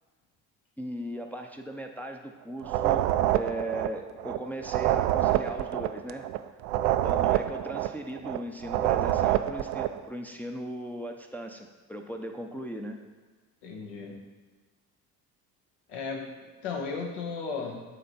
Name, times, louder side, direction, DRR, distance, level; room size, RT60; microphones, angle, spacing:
voice 1, 0.8-3.0 3.3-6.3 7.0-13.0, right 1 dB, 5° left, 2 dB, 0.6 m, -38 dB
sound 1, 2.6-10.0, right 13 dB, 65° right, 0.5 m, -26 dB
voice 2, 13.6-14.2 15.9-17.8, left 4 dB, 70° left, 1 dB, 1.3 m, -35 dB
8.6 x 3.3 x 4.1 m, 1.4 s
hypercardioid pair, 55°, 47 cm